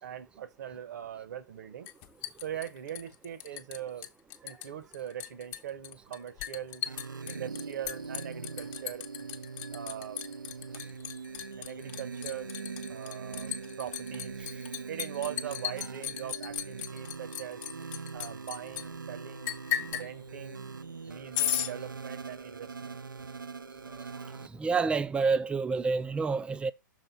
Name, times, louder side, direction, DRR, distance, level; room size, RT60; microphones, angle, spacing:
voice 1, 0.0-1.9 2.4-4.1 4.4-6.9 7.3-9.0 9.7-10.3 11.6-12.5 12.8-14.4 14.9-17.6 18.1-19.5 19.9-20.7 21.1-23.0, right 10 dB, 60° right, 1.2 m, -41 dB
Liquid, 1.9-3.8 4.0-4.7 4.9-18.8 19.5-20.1 21.3-21.7, left 12 dB, 40° left, 0.8 m, -36 dB
sound 1, 6.9-24.5, right 5 dB, 90° right, 0.5 m, -42 dB
voice 2, 24.6-26.7, right 4 dB, 10° right, 0.4 m, -28 dB
6.5 x 3.8 x 5.5 m
hypercardioid pair, 120°, 11 cm